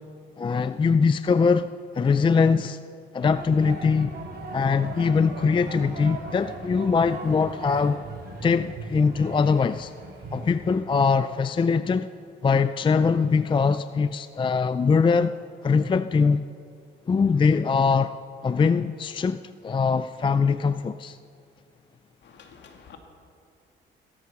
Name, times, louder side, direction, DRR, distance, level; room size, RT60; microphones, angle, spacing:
voice 1, 0.4-1.7 1.9-2.8 3.1-4.2 4.5-8.0 8.4-9.9 10.3-12.1 12.4-15.3 15.6-16.5 17.1-18.1 18.4-21.2, left 5 dB, 25° left, 12 dB, 0.4 m, -22 dB
sound 1, 3.2-10.7, right 3 dB, 50° right, 4.2 m, -39 dB
voice 2, 22.2-23.0, left 7 dB, 65° left, 3 dB, 2.5 m, -49 dB
17.0 x 13.5 x 5.9 m, 2.4 s
cardioid pair, 90°, 20 cm